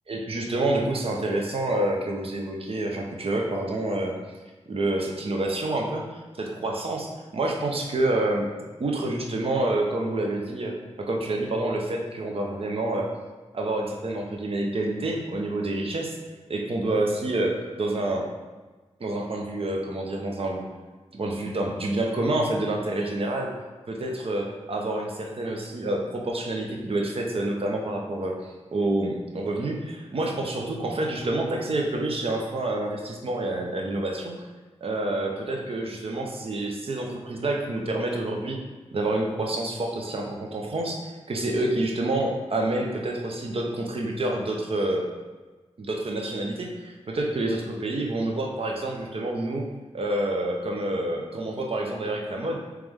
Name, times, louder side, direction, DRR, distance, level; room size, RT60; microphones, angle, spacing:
voice 1, 0.1-4.1 4.7-6.1 6.4-8.5 8.8-10.7 11.0-13.1 13.5-16.1 16.5-18.3 19.0-20.7 21.1-23.5 23.9-34.4 34.8-38.6 38.9-41.0 41.3-45.1 45.8-49.7 49.9-52.6, right 2 dB, 55° right, 0 dB, 0.7 m, -28 dB
3.3 x 3.1 x 3.6 m, 1.3 s
cardioid pair, 65°, 11 cm